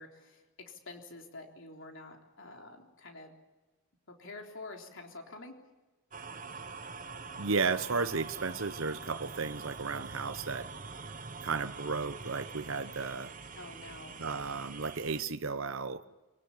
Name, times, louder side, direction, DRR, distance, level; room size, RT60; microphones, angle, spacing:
voice 1, 0.0-3.3 4.1-5.5 13.5-14.2, left 2 dB, 55° left, 3.6 m, -48 dB
sound 1, 6.1-15.2, right 4 dB, 35° right, 1.1 m, -45 dB
voice 2, 7.4-10.7 11.4-13.3 14.2-16.0, right 4 dB, 65° right, 0.9 m, -34 dB
24.5 x 18.0 x 8.5 m
head